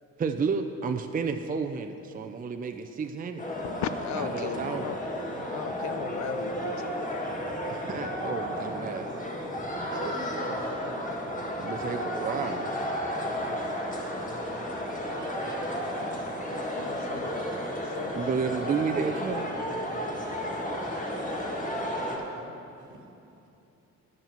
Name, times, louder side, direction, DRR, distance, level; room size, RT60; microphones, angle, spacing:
voice 1, 0.2-3.4 4.2-4.9 7.7-9.1 11.6-12.7 18.2-19.5, right 5 dB, 30° right, 7 dB, 0.5 m, -31 dB
sound 1, 3.4-22.2, equal, 25° left, 1.7 m, -33 dB
voice 2, 3.6-5.0 5.5-7.1 16.7-18.6, left 10 dB, 70° left, 13 dB, 0.6 m, -38 dB
voice 3, 9.9-10.9 13.8-15.9 20.8-23.5, right 3 dB, 80° right, 0 dB, 1.4 m, -44 dB
10.5 x 5.7 x 7.2 m, 2.7 s
cardioid pair, 90°, 30 cm